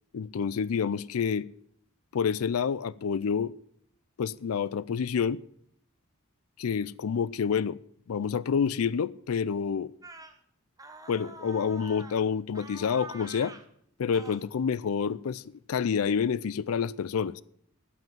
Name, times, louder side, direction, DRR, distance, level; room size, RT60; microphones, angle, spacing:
voice 1, 0.1-1.5 2.1-3.5 4.2-5.4 6.6-7.8 8.1-9.9 11.1-13.5 14.0-15.4 15.7-17.4, left 6 dB, 80° left, 0.4 m, -28 dB
sound 1, 10.0-10.4 10.8-12.2 12.5-13.7 14.1-14.4, right 3 dB, 15° right, 1.1 m, -46 dB
14.5 x 5.8 x 9.0 m
head